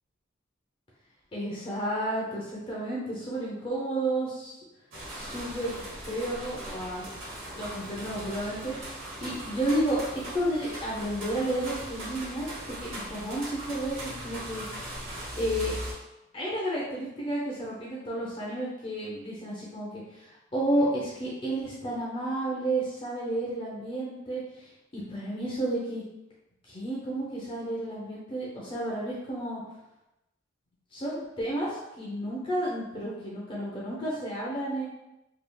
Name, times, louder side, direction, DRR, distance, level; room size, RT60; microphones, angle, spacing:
voice 1, 1.3-4.5 5.1-7.1 7.5-8.8 9.2-10.0 10.3-14.7 15.4-15.7 16.3-20.3 20.5-24.4 24.9-26.0 26.7-29.6 30.9-34.8, right 1 dB, 25° left, -6 dB, 0.6 m, -31 dB
sound 1, 4.9-15.9, right 1 dB, 65° right, 0.9 m, -39 dB
3.3 x 2.3 x 2.3 m, 0.94 s
head